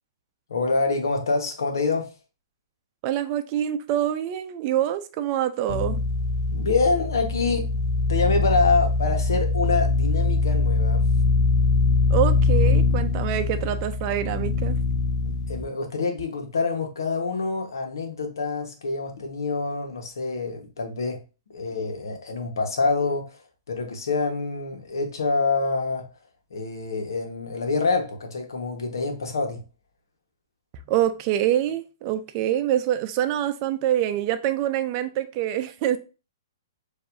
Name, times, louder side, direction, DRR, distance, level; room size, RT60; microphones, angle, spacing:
voice 1, 0.5-2.1 6.5-7.7 8.1-11.1 15.2-21.2 21.5-23.4 23.7-26.1 26.5-29.6, left 4 dB, 75° left, 1.2 m, -26 dB
voice 2, 3.0-6.0 12.1-14.8 30.9-36.0, right 11 dB, 40° right, 0.5 m, -25 dB
sound 1, 5.7-15.6, left 4 dB, 40° left, 0.9 m, -23 dB
6.7 x 2.7 x 2.6 m
hypercardioid pair, 130°, 2 cm